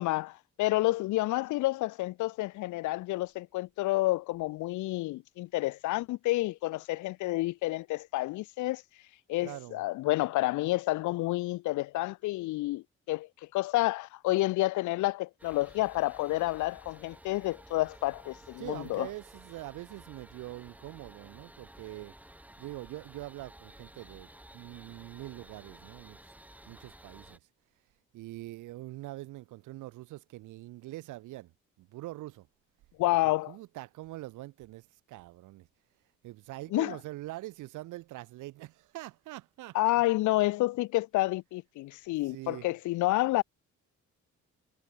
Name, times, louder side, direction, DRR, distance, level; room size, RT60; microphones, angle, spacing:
voice 1, 0.0-8.8 9.3-19.1 33.0-33.6 36.7-36.9 39.7-43.4, left 18 dB, 75° left, 0.5 m, -29 dB
voice 2, 9.4-9.8 18.6-22.1 22.6-26.3 26.7-27.4 28.1-31.5 31.8-32.5 33.2-35.7 36.2-40.0 42.2-42.7, right 17 dB, 85° right, 0.7 m, -44 dB
sound 1, 15.4-27.4, right 1 dB, 5° right, 5.0 m, -53 dB
cardioid pair, 90°, 30 cm